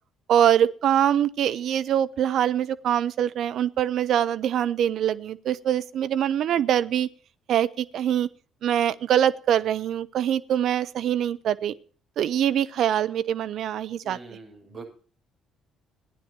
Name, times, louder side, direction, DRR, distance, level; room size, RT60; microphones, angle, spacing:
voice 1, 0.3-7.1 7.5-8.3 8.6-11.7 12.2-14.2, right 10 dB, 60° right, 14 dB, 0.6 m, -23 dB
voice 2, 14.0-14.8, right 3 dB, 45° right, 0 dB, 7.4 m, -43 dB
15.5 x 10.0 x 4.5 m, 0.43 s
hypercardioid pair, 50°, 0 cm